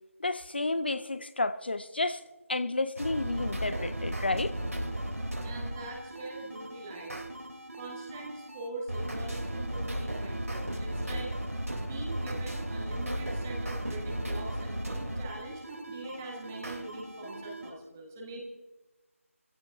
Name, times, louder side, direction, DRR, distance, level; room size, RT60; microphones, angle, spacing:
voice 1, 0.2-2.2 2.5-4.5, left 2 dB, 45° left, 14 dB, 0.6 m, -31 dB
sound 1, 3.0-17.7, right 1 dB, 90° right, 3.1 m, -36 dB
voice 2, 5.4-7.2 7.7-11.3 11.7-18.5, right 2 dB, 10° right, -2 dB, 1.5 m, -43 dB
25.0 x 16.0 x 2.6 m, 1.1 s
figure-of-eight pair, 165°, 8 cm